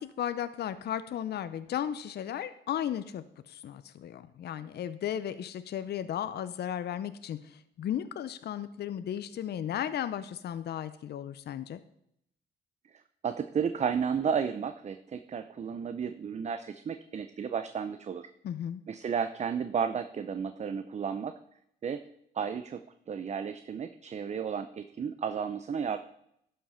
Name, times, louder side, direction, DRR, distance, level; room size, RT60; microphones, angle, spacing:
voice 1, 0.0-11.8 18.4-18.8, left 10 dB, 55° left, 12 dB, 0.6 m, -35 dB
voice 2, 12.9-18.3 18.9-21.3 21.8-22.0 22.3-22.8 23.1-26.0, right 7 dB, 35° right, 10 dB, 0.5 m, -33 dB
11.5 x 5.6 x 5.6 m, 0.75 s
cardioid pair, 90°, 20 cm